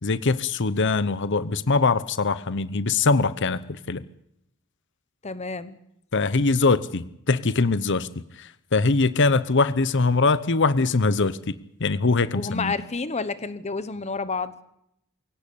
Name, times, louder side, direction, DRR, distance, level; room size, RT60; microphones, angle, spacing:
voice 1, 0.0-4.0 6.1-8.1 8.4-12.7, left 3 dB, 55° left, 15 dB, 0.9 m, -22 dB
voice 2, 5.2-5.8 12.3-14.5, left 4 dB, 30° left, 14 dB, 1.0 m, -29 dB
22.5 x 17.5 x 8.5 m, 0.77 s
head